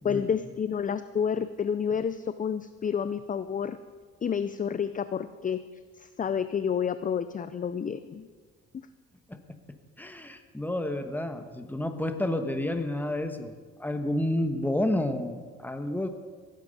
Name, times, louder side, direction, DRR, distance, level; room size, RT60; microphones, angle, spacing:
voice 1, 0.0-3.8 4.2-5.6 6.0-8.3, left 7 dB, 25° left, 12 dB, 0.5 m, -29 dB
voice 2, 10.0-13.5 13.8-16.1, left 1 dB, 5° left, 7 dB, 1.2 m, -30 dB
16.5 x 9.4 x 5.3 m, 1.5 s
cardioid pair, 90°, 30 cm